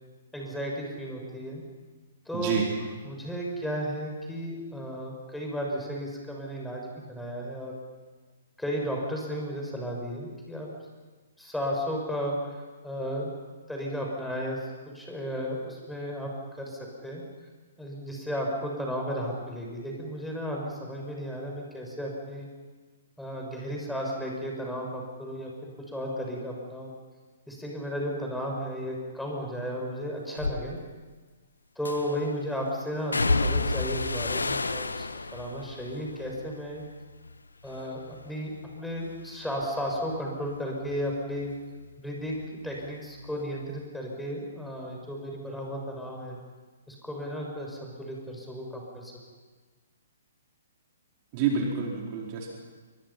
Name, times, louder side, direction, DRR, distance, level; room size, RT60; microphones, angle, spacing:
voice 1, 0.3-1.6 2.2-2.6 3.0-7.7 8.6-10.7 11.4-13.3 13.7-17.2 17.8-22.5 23.2-26.9 27.5-30.8 31.7-36.8 37.6-41.5 42.0-46.4 46.9-49.1, equal, 5° left, -1 dB, 6.6 m, -34 dB
sound 1, 30.4-30.6 31.9-32.3 33.1-37.4 37.7-38.3 38.7-42.0 42.2-43.4 43.6-43.8, left 3 dB, 80° left, 1.2 m, -32 dB
voice 2, 51.3-52.5, right 6 dB, 35° right, -1 dB, 4.6 m, -28 dB
29.0 x 24.5 x 5.8 m, 1.3 s
figure-of-eight pair, 120°, 0 cm